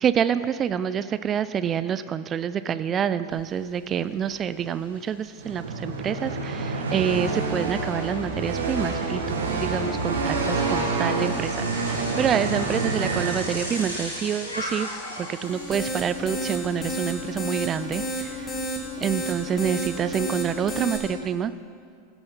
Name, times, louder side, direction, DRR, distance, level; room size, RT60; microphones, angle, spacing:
voice 1, 0.0-14.9 15.2-18.6 19.0-21.5, right 8 dB, 25° right, 14 dB, 0.3 m, -27 dB
Bicycle, 3.3-3.4 3.8-17.5, equal, 85° left, 3.1 m, -40 dB
sound 1, 5.4-14.0, right 3 dB, 65° right, 1.6 m, -28 dB
sound 2, 15.4-21.0, right 1 dB, 25° left, 2.1 m, -31 dB
16.5 x 6.9 x 5.6 m, 2.2 s
figure-of-eight pair, 85°, 0 cm